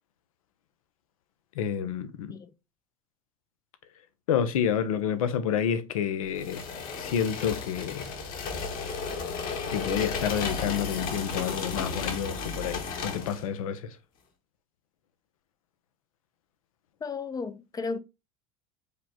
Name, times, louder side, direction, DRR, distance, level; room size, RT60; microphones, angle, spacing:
voice 1, 1.5-2.3 4.3-6.6 6.9-8.1 9.7-14.0, left 8 dB, 85° left, 0.6 m, -29 dB
sound 1, 6.4-13.5, left 4 dB, 55° left, 1.3 m, -34 dB
voice 2, 17.0-18.0, left 4 dB, 20° left, 0.5 m, -34 dB
5.0 x 2.2 x 4.3 m
hypercardioid pair, 90°, 17 cm